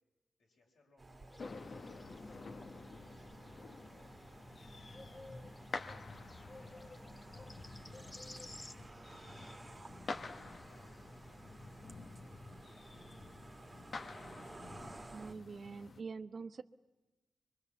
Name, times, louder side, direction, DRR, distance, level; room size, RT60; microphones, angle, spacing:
voice 1, 0.4-2.5 3.0-3.3 3.5-5.5 6.0-7.9 8.7-9.2 9.6-13.8, left 2 dB, 85° left, -1 dB, 5.0 m, -72 dB
sound 1, 1.0-15.3, right 2 dB, 35° right, 1.4 m, -55 dB
sound 2, 1.3-8.7, left 2 dB, 20° left, 1.0 m, -56 dB
sound 3, 1.4-16.0, left 3 dB, 60° left, 1.2 m, -49 dB
voice 2, 15.1-16.6, right 4 dB, 65° right, 10 dB, 0.9 m, -45 dB
23.5 x 22.5 x 7.1 m, 1.1 s
supercardioid pair, 45°, 0 cm